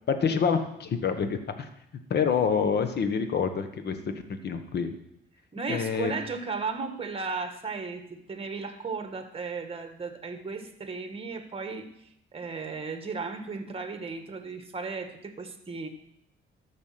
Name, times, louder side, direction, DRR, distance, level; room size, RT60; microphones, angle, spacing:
voice 1, 0.1-1.7 2.1-4.9 5.7-6.1, left 6 dB, 55° left, 8 dB, 1.4 m, -27 dB
voice 2, 5.5-11.9 12.3-15.9, right 4 dB, 30° right, 7 dB, 1.6 m, -35 dB
13.5 x 6.3 x 5.8 m, 0.79 s
cardioid pair, 90°, 20 cm